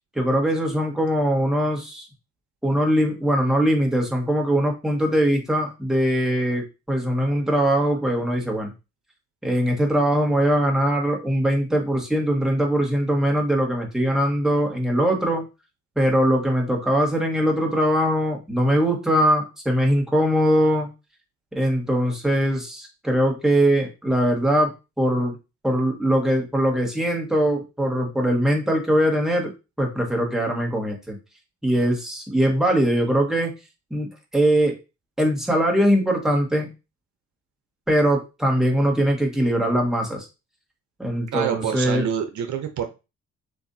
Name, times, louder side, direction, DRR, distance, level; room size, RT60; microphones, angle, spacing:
voice 1, 0.1-2.1 2.6-8.7 9.4-15.5 15.9-20.9 21.5-25.3 25.6-29.5 29.8-31.2 31.6-33.5 33.9-34.8 35.2-36.7 37.9-40.3 41.0-42.1, equal, ahead, 0 dB, 1.6 m, -21 dB
voice 2, 41.3-42.9, right 8 dB, 70° right, 7 dB, 0.8 m, -26 dB
6.8 x 2.7 x 2.7 m, 0.27 s
cardioid pair, 90°, 30 cm